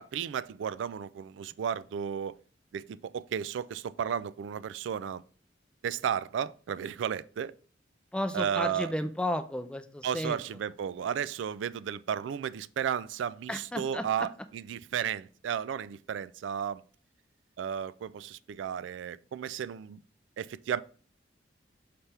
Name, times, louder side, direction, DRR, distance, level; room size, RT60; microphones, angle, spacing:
voice 1, 0.0-2.4 2.7-5.2 5.8-7.5 8.3-8.9 10.0-16.8 17.6-20.0 20.4-20.8, right 8 dB, 85° right, 0.3 m, -33 dB
voice 2, 8.1-10.4 13.5-14.3, left 1 dB, 5° left, 0.4 m, -33 dB
5.9 x 3.4 x 5.5 m
head